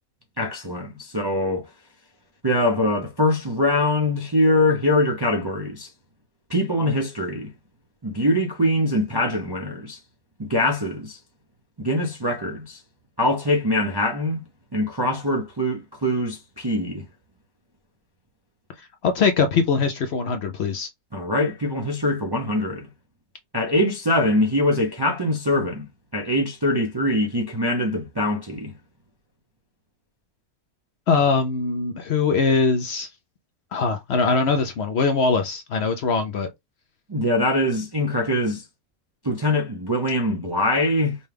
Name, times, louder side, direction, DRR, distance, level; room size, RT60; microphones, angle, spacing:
voice 1, 0.4-1.7 2.4-5.9 6.5-7.5 8.0-10.0 10.4-11.2 11.8-12.8 13.2-14.4 14.7-17.0 21.1-22.9 23.5-25.9 26.1-28.7 37.1-38.6 39.2-41.2, left 1 dB, 30° right, 0.4 m, -23 dB
voice 2, 19.0-20.9 31.1-33.1 33.7-36.5, left 4 dB, 60° left, 0.7 m, -22 dB
5.3 x 2.2 x 3.3 m
omnidirectional pair, 1.5 m